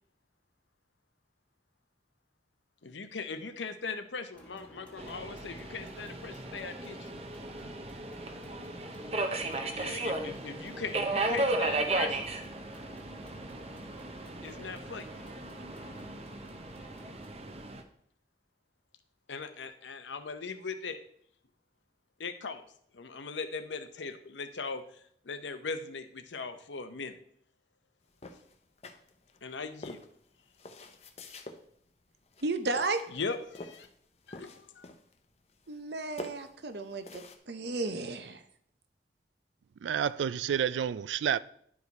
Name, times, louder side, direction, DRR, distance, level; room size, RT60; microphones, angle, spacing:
voice 1, 2.8-7.1 9.6-12.2 14.4-15.1 19.3-21.0 22.2-22.6 22.9-24.8 25.2-27.1 29.4-30.0 33.1-33.9 34.3-34.9, left 4 dB, 90° left, 0.8 m, -39 dB
sound 1, 4.3-17.3, left 1 dB, 5° left, 1.1 m, -54 dB
Subway metro underground, 5.0-17.8, right 2 dB, 35° right, 0.7 m, -35 dB
sound 2, 28.2-29.4 29.8-31.6 32.3-32.5 32.8-33.9 34.2-35.2 35.5-35.9 36.2-37.4, left 2 dB, 35° left, 0.7 m, -46 dB
voice 2, 32.4-33.0 35.7-38.4, right 3 dB, 70° right, 0.8 m, -33 dB
voice 3, 39.8-41.4, right 8 dB, 85° right, 0.3 m, -29 dB
11.0 x 4.9 x 4.1 m
head